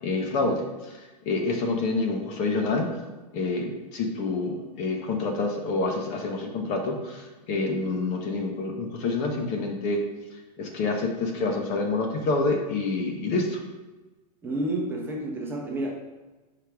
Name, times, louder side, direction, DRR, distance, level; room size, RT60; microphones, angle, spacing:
voice 1, 0.0-2.9 3.3-10.0 10.6-13.6, left 3 dB, 30° left, 3 dB, 0.9 m, -27 dB
voice 2, 14.4-15.9, right 1 dB, 10° right, -1 dB, 0.9 m, -30 dB
7.4 x 5.0 x 3.5 m, 1.2 s
hypercardioid pair, 140°, 21 cm